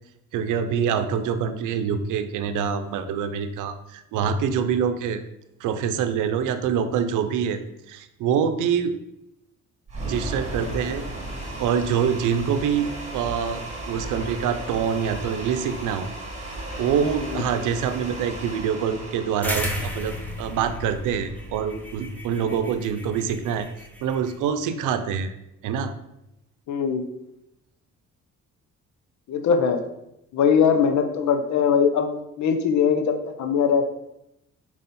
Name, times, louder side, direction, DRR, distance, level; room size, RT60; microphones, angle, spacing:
voice 1, 0.3-5.2 5.6-7.6 7.9-9.0 10.0-11.0 11.6-16.1 16.8-23.7 24.0-25.3 25.6-25.9, right 7 dB, 90° right, 10 dB, 0.6 m, -25 dB
sound 1, 9.9-22.0, right 1 dB, 25° right, 2.2 m, -36 dB
sound 2, 19.4-24.3, equal, 5° left, 1.2 m, -34 dB
voice 2, 26.7-27.1 29.3-29.8 30.3-32.1 32.4-33.8, left 6 dB, 70° left, 6 dB, 0.8 m, -21 dB
4.9 x 4.2 x 5.3 m, 0.85 s
cardioid pair, 90°, 30 cm